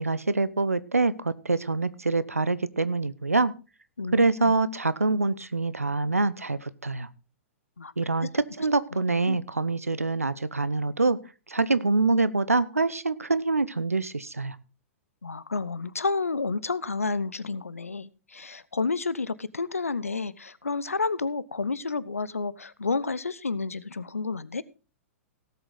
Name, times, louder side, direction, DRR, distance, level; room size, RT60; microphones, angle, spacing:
voice 1, 0.0-3.5 4.1-7.1 8.0-11.2 11.5-14.6, right 3 dB, 85° right, 17 dB, 0.8 m, -25 dB
voice 2, 4.0-4.5 7.8-7.9 8.2-8.3 8.9-9.4 15.2-24.6, left 4 dB, 80° left, 19 dB, 0.7 m, -30 dB
17.5 x 7.9 x 4.0 m, 0.32 s
figure-of-eight pair, 110°, 8 cm